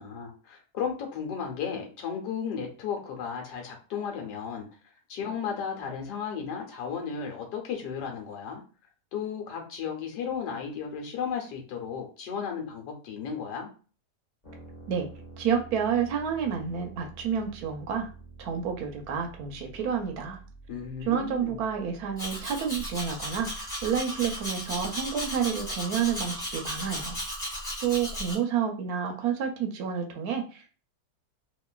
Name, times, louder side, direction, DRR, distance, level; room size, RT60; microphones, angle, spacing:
voice 1, 0.0-4.7 5.1-8.6 9.1-13.7 20.7-21.6, left 7 dB, 85° left, 1 dB, 1.4 m, -34 dB
sound 1, 14.4-26.1, right 3 dB, 30° left, 1.1 m, -49 dB
voice 2, 15.4-18.1 18.4-20.4 21.1-27.2 27.8-30.8, right 7 dB, 75° right, 3 dB, 1.0 m, -29 dB
Domestic sounds home sounds, 22.2-28.4, equal, 10° left, 1.4 m, -35 dB
2.9 x 2.5 x 2.3 m, 0.37 s
omnidirectional pair, 1.7 m